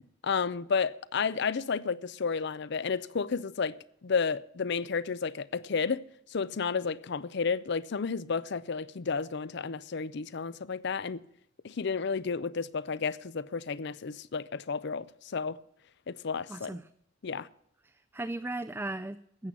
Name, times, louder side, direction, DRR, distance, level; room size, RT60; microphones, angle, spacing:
voice 1, 0.2-3.7 4.0-6.0 6.3-11.2 11.6-15.6 16.1-16.7 17.2-17.5, left 5 dB, 60° left, 0.5 m, -32 dB
voice 2, 16.5-16.9 17.8-19.5, right 2 dB, 10° right, 0.4 m, -37 dB
13.5 x 8.3 x 7.3 m
head